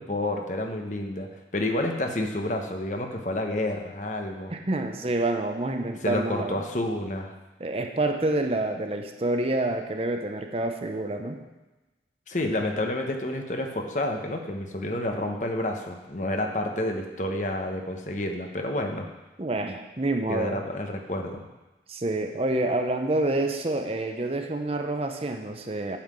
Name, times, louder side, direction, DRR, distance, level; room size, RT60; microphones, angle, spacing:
voice 1, 0.0-4.5 6.0-7.3 12.3-19.1 20.3-21.4, left 1 dB, 45° left, 3 dB, 1.0 m, -29 dB
voice 2, 4.5-6.6 7.6-11.4 19.4-20.6 21.9-26.0, right 2 dB, 35° right, 4 dB, 0.8 m, -28 dB
8.8 x 5.7 x 7.6 m, 1.1 s
head